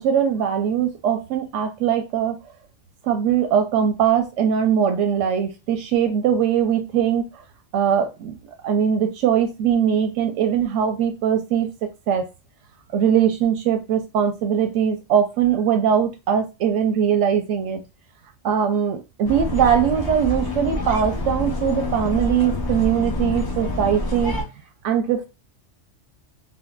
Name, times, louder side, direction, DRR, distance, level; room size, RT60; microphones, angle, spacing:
voice 1, 0.0-2.4 3.0-7.3 7.7-8.4 8.6-12.2 12.9-17.8 18.4-24.4 24.8-25.3, right 8 dB, 90° right, 0.9 m, -21 dB
sound 1, 19.2-24.4, left 2 dB, 40° left, 0.3 m, -27 dB
3.6 x 2.1 x 2.3 m
omnidirectional pair, 1.2 m